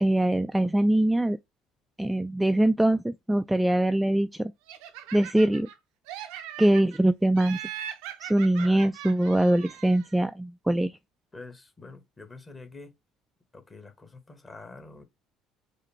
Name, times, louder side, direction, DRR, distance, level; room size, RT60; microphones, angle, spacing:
voice 1, 0.0-1.4 2.0-4.5 5.1-5.7 6.6-7.6 8.2-10.9, right 1 dB, 5° right, 0.3 m, -23 dB
Laughter, 4.7-5.8 6.1-7.0 7.4-10.1, right 11 dB, 70° right, 0.5 m, -40 dB
voice 2, 8.6-8.9 11.3-12.9 13.5-15.0, left 3 dB, 25° left, 1.4 m, -46 dB
4.9 x 2.6 x 3.0 m
hypercardioid pair, 60°, 0 cm